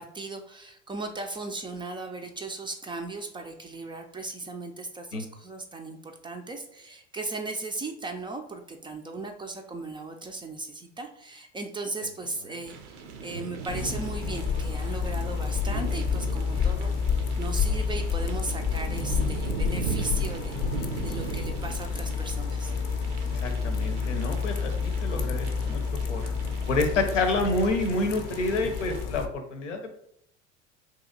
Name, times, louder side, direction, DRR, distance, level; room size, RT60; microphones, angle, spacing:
voice 1, 0.0-22.7, right 3 dB, 15° right, 4 dB, 0.3 m, -37 dB
sound 1, 12.6-29.0, right 5 dB, 85° right, 0.6 m, -38 dB
sound 2, 13.7-29.3, left 6 dB, 45° left, 0.5 m, -29 dB
voice 2, 23.4-25.8 26.1-26.3 26.7-29.9, left 2 dB, 90° left, 4 dB, 0.7 m, -28 dB
2.9 x 2.7 x 3.8 m, 0.72 s
hypercardioid pair, 80°, 35 cm